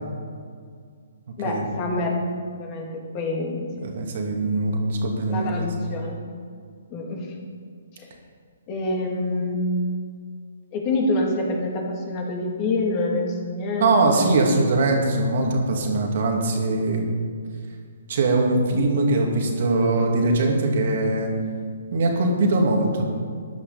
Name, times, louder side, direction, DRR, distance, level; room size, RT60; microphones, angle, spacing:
voice 1, 1.4-2.2 2.5-3.9 5.3-6.3 6.9-7.4 7.9-8.1 8.7-9.7 10.7-14.4, left 2 dB, 30° left, 0 dB, 2.5 m, -27 dB
voice 2, 3.8-5.7 13.8-17.1 18.1-21.3 21.9-23.0, right 2 dB, 50° right, 1 dB, 2.2 m, -21 dB
14.5 x 11.0 x 4.2 m, 2.1 s
figure-of-eight pair, 130°, 0 cm